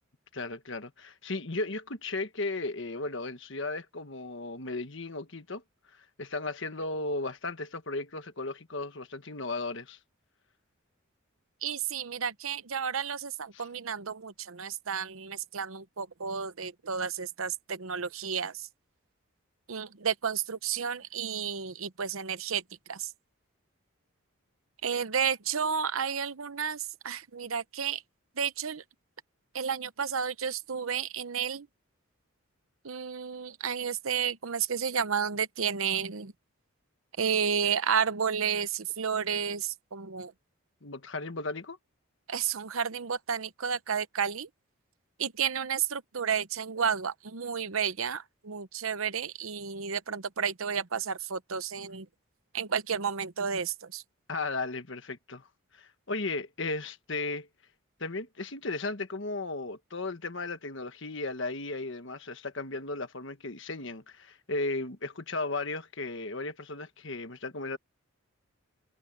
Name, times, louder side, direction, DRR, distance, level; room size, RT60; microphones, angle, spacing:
voice 1, 0.3-5.6 6.2-10.0 13.5-13.6 40.8-41.8 54.3-55.5 55.7-57.5 58.0-67.8, left 3 dB, 60° left, 1.4 m, -35 dB
voice 2, 11.6-18.7 19.7-22.6 22.9-23.1 24.8-28.0 28.4-28.8 29.5-31.7 32.8-36.3 37.2-40.3 42.3-44.5 45.2-52.1 52.5-54.0, right 7 dB, 75° right, 0.8 m, -31 dB
head